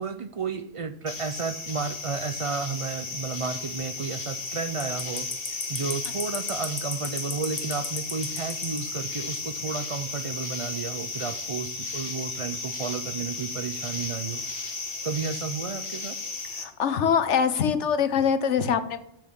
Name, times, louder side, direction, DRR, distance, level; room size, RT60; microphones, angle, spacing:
voice 1, 0.0-14.4 15.0-16.2, right 5 dB, 45° right, 11 dB, 0.4 m, -32 dB
sound 1, 1.1-16.6, left 3 dB, 50° left, 1.6 m, -34 dB
voice 2, 16.6-19.0, left 7 dB, 75° left, 11 dB, 1.1 m, -23 dB
7.5 x 7.3 x 7.2 m, 0.74 s
omnidirectional pair, 1.2 m